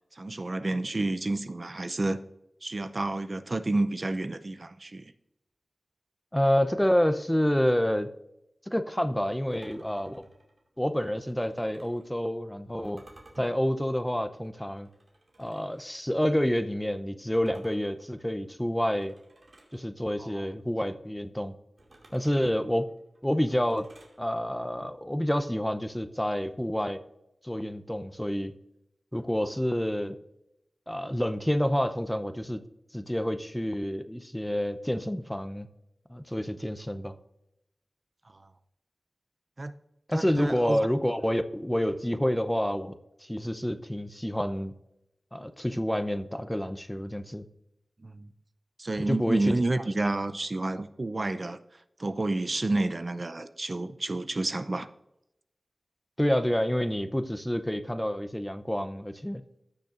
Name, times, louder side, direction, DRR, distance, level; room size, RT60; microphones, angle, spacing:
voice 1, 0.1-2.2 2.6-5.1 20.2-20.5 39.6-39.7 40.1-40.8 48.0-48.3 48.8-51.6 52.0-54.9, right 2 dB, 45° right, 10 dB, 0.5 m, -30 dB
voice 2, 6.3-8.1 8.7-10.2 10.8-13.0 13.4-14.9 15.4-19.1 19.7-21.5 22.1-22.9 23.2-23.9 24.2-27.0 27.4-28.5 29.1-30.2 30.9-32.6 32.9-35.7 36.1-37.2 40.1-42.9 43.2-44.7 45.3-47.5 49.0-49.5 56.2-59.4, equal, 10° left, 10 dB, 0.6 m, -28 dB
sound 1, 9.5-12.1 12.8-15.8 17.3-19.8 21.8-24.2, right 2 dB, 65° right, 2.3 m, -58 dB
15.5 x 6.7 x 2.5 m, 0.84 s
wide cardioid pair, 65°, 0 cm